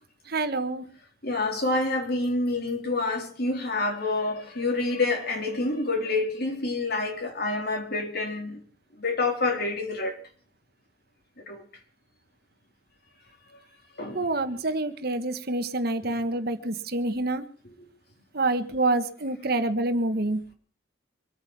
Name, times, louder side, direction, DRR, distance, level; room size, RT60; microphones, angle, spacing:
voice 1, 0.3-0.9 14.1-17.4 18.3-20.4, right 2 dB, 55° right, 1.4 m, -27 dB
voice 2, 1.2-8.6 9.0-10.1 11.5-11.6 14.0-14.2, left 2 dB, 55° left, 4.0 m, -27 dB
24.5 x 9.0 x 6.1 m
head